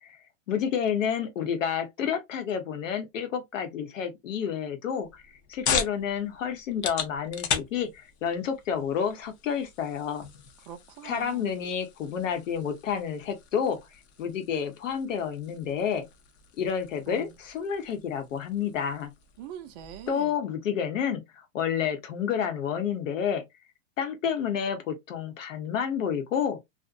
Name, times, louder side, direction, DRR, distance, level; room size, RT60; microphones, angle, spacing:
voice 1, 0.5-7.9 8.2-10.3 11.0-13.8 14.2-16.0 16.6-19.1 20.1-23.4 24.0-26.6, left 7 dB, 80° left, 1.0 m, -30 dB
sound 1, 5.0-20.1, left 7 dB, 60° left, 0.7 m, -38 dB
voice 2, 10.7-11.5 17.1-17.4 19.4-20.3, right 10 dB, 35° right, 0.5 m, -43 dB
2.5 x 2.1 x 2.4 m
hypercardioid pair, 140°, 38 cm